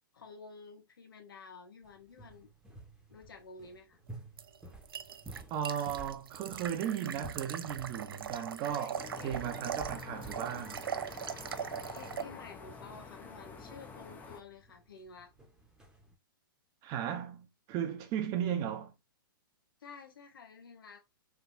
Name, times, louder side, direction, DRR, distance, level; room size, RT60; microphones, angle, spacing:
voice 1, 0.1-2.5 3.1-4.0 8.6-9.5 11.7-15.3 19.8-21.0, left 4 dB, 75° left, 1.0 m, -51 dB
sound 1, 1.8-16.2, right 2 dB, 5° right, 0.9 m, -53 dB
sound 2, 4.4-12.2, right 8 dB, 80° right, 0.4 m, -41 dB
voice 2, 5.5-10.9 16.8-18.9, right 9 dB, 35° right, 0.7 m, -36 dB
sound 3, 8.9-14.4, left 5 dB, 15° left, 0.5 m, -48 dB
3.4 x 2.6 x 2.5 m
hypercardioid pair, 120°, 12 cm